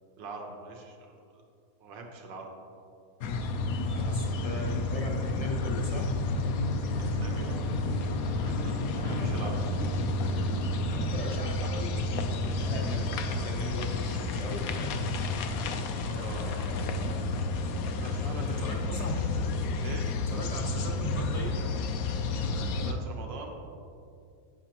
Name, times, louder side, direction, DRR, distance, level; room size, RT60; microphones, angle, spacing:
voice 1, 0.2-1.1 1.8-2.5 3.8-4.1 7.0-9.5 16.0-16.7 17.7-18.9 19.8-20.1 22.7-23.5, right 3 dB, 85° right, 1 dB, 1.7 m, -43 dB
sound 1, 3.2-22.9, left 2 dB, 70° left, 0.9 m, -30 dB
voice 2, 3.9-6.1 8.9-9.4 10.9-15.0 18.4-19.1 20.3-21.6, left 1 dB, 35° left, 0 dB, 0.6 m, -38 dB
15.0 x 5.9 x 2.9 m, 2.4 s
omnidirectional pair, 1.9 m